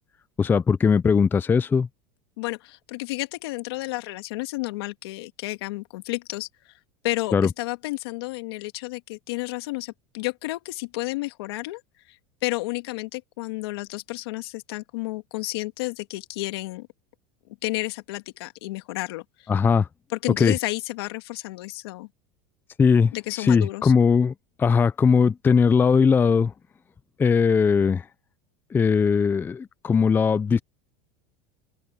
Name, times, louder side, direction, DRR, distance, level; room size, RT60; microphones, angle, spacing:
voice 1, 0.4-1.9 7.3-7.5 19.5-19.9 20.4-20.5 22.8-24.3 24.6-26.5 27.2-28.0 28.7-30.6, left 6 dB, 15° left, 0.4 m, -19 dB
voice 2, 2.4-6.5 7.0-11.8 12.1-16.9 17.6-19.5 20.1-22.1 23.1-23.9, left 21 dB, 80° left, 2.3 m, -31 dB
open air
supercardioid pair, 125°, 13 cm